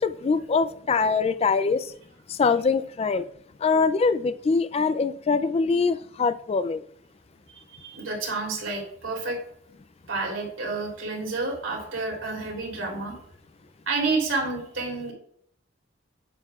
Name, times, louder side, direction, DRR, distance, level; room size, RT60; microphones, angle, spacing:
voice 1, 0.0-1.9 2.3-3.3 3.6-6.8, left 4 dB, 30° left, 0.3 m, -23 dB
voice 2, 7.7-9.4 10.1-13.2 13.9-15.1, right 3 dB, 75° right, 3.2 m, -29 dB
9.7 x 7.9 x 2.4 m
head